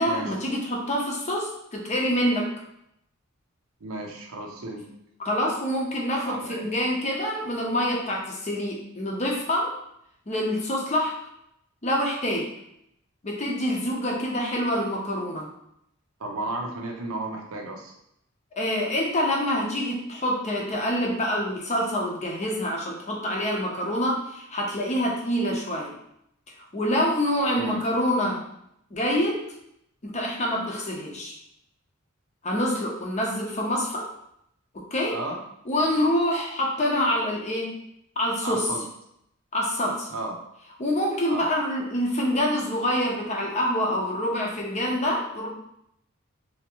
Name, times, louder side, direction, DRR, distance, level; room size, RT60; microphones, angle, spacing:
voice 1, 0.0-2.5 5.2-9.7 10.3-11.1 11.8-12.5 13.2-15.5 18.5-25.9 26.7-28.4 28.9-29.4 30.0-31.3 32.4-34.1 34.7-35.2 35.7-37.7 38.2-38.6 39.5-40.1 40.8-45.5, equal, 35° left, -1 dB, 0.7 m, -26 dB
voice 2, 3.8-4.9 6.3-6.7 16.2-17.9 27.6-27.8 35.1-35.4 38.4-38.8 40.1-40.4 41.3-41.5, right 2 dB, 90° right, 1 dB, 0.7 m, -33 dB
3.4 x 2.9 x 3.0 m, 0.76 s
head